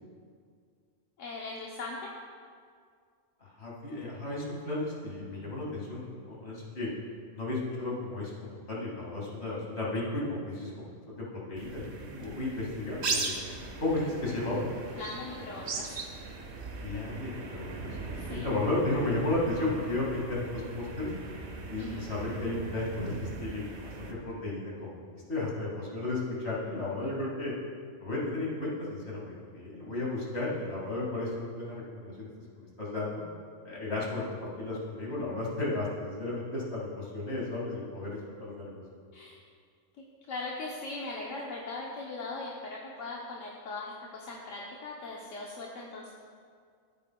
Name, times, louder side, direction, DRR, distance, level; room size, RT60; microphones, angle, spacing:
voice 1, 1.2-2.1 15.0-16.0 18.1-18.5 21.8-22.1 39.1-39.4 40.3-46.1, left 3 dB, 75° left, -3 dB, 1.2 m, -40 dB
voice 2, 3.4-6.9 7.3-13.4 13.8-14.6 16.8-21.1 21.7-27.5 28.0-33.2 33.6-38.8, left 2 dB, 55° left, -4 dB, 2.3 m, -34 dB
sound 1, 11.6-24.1, right 3 dB, 60° right, 1.1 m, -39 dB
14.5 x 8.3 x 2.3 m, 2.1 s
omnidirectional pair, 1.3 m